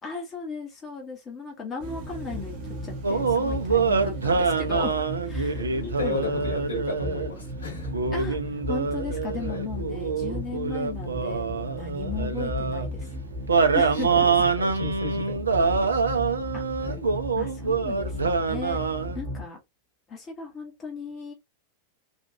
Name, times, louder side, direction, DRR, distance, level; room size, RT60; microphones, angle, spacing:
voice 1, 0.0-5.0 5.2-5.7 6.0-6.4 8.1-13.2 13.7-14.3 16.5-16.6 17.3-18.8 19.1-19.6 20.1-21.3, left 5 dB, 25° left, 1.1 m, -36 dB
sound 1, 1.8-19.4, equal, 50° right, 1.0 m, -35 dB
sound 2, 3.0-7.3 7.9-12.9 13.5-19.2, right 4 dB, 75° right, 0.5 m, -25 dB
voice 2, 5.5-8.0 9.4-9.6 13.9-16.3 16.8-17.2, left 3 dB, 70° left, 1.9 m, -36 dB
3.4 x 2.5 x 2.7 m
figure-of-eight pair, 90°, 0 cm